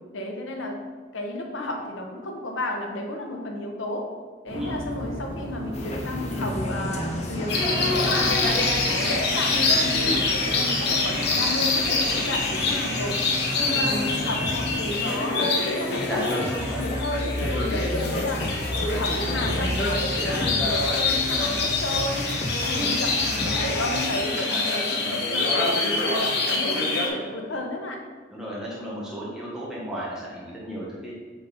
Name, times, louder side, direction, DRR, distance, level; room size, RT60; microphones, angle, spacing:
voice 1, 0.1-0.8 1.1-4.1 4.4-13.2 13.7-18.4 18.7-22.3 22.6-28.0, left 1 dB, 85° left, 2 dB, 1.1 m, -32 dB
sound 1, 4.5-14.7, equal, 70° right, 1.8 m, -36 dB
sound 2, 5.7-24.1, left 1 dB, 35° left, 0.8 m, -32 dB
sound 3, 7.5-27.1, left 3 dB, 55° left, 1.1 m, -25 dB
voice 2, 15.9-16.8 17.5-17.8 22.7-23.0 24.4-25.2 28.3-31.1, equal, 5° right, -7 dB, 1.3 m, -34 dB
8.3 x 4.0 x 4.1 m, 1.5 s
head